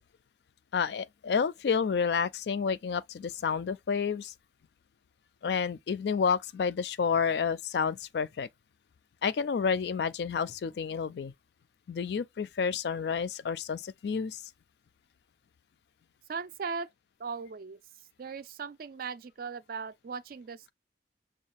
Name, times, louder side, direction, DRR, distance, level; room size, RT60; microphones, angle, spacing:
voice 1, 0.7-4.3 5.4-8.5 9.2-11.3 11.9-14.4, left 6 dB, 65° left, 0.3 m, -30 dB
voice 2, 16.3-16.9 17.2-17.8 18.2-20.7, right 5 dB, 50° right, 0.4 m, -38 dB
6.3 x 2.3 x 2.9 m
head